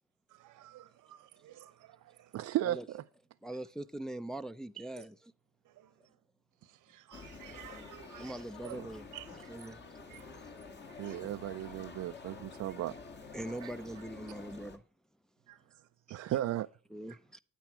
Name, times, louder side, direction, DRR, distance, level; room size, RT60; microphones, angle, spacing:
voice 1, 0.3-2.5 4.9-5.0 5.6-6.2 6.6-8.8 9.1-9.8 10.1-10.6 10.9-11.2 13.4-13.5 15.5-16.3 17.1-17.2, right 14 dB, 85° right, 1.1 m, -54 dB
voice 2, 2.3-3.0 11.0-12.9 13.6-13.7 16.1-16.7, right 13 dB, 60° right, 0.4 m, -35 dB
voice 3, 3.4-5.1 8.2-9.1 9.5-9.8 11.3-11.4 13.3-14.8 16.9-17.4, right 1 dB, ahead, 0.5 m, -42 dB
sound 1, 7.1-14.8, left 4 dB, 35° left, 1.5 m, -49 dB
9.1 x 8.5 x 4.6 m
cardioid pair, 90°, 30 cm